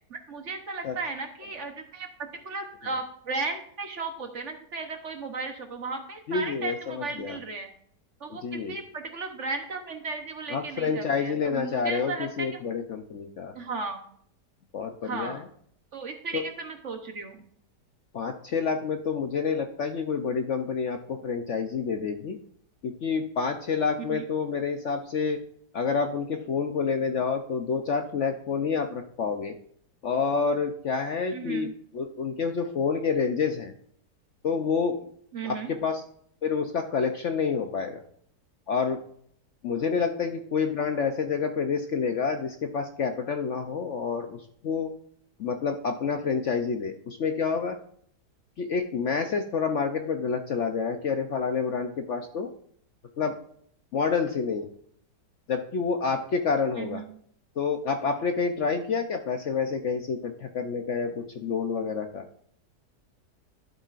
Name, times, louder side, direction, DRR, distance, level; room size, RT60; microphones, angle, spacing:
voice 1, 0.1-7.7 8.2-12.6 13.5-14.0 15.0-15.4 15.9-17.4 24.0-24.2 31.3-31.7 35.3-35.7 56.7-57.1, right 3 dB, 50° right, 5 dB, 1.2 m, -35 dB
voice 2, 6.3-7.4 8.3-8.7 10.5-13.5 14.7-15.5 16.3-16.4 18.1-22.4 22.8-25.4 25.7-29.6 30.0-31.7 31.9-33.7 34.4-35.0 35.4-36.0 36.4-38.0 38.7-39.0 39.6-44.9 45.4-47.8 48.6-52.5 53.2-53.3 53.9-54.7 55.5-57.0 57.6-62.2, left 5 dB, 55° left, 5 dB, 0.9 m, -28 dB
12.0 x 8.1 x 2.5 m, 0.63 s
omnidirectional pair, 1.8 m